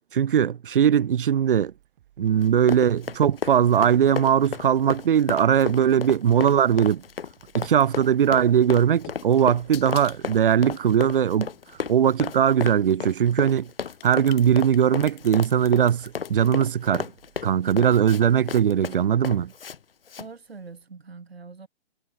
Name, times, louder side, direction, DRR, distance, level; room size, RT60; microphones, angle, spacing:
voice 1, 0.1-1.7 2.2-7.0 7.5-11.5 11.9-13.7 14.0-17.1 17.4-19.5, right 9 dB, 60° right, 0.7 m, -20 dB
sound 1, 1.6-18.8, right 13 dB, 45° right, 6.5 m, -61 dB
Run, 2.4-19.8 20.1-20.3, left 7 dB, 65° left, 1.3 m, -34 dB
sound 2, 8.5-12.8 13.5-16.6, left 27 dB, 25° left, 1.1 m, -46 dB
voice 2, 20.2-21.7, right 4 dB, 80° right, 2.0 m, -43 dB
figure-of-eight pair, 125°, 30 cm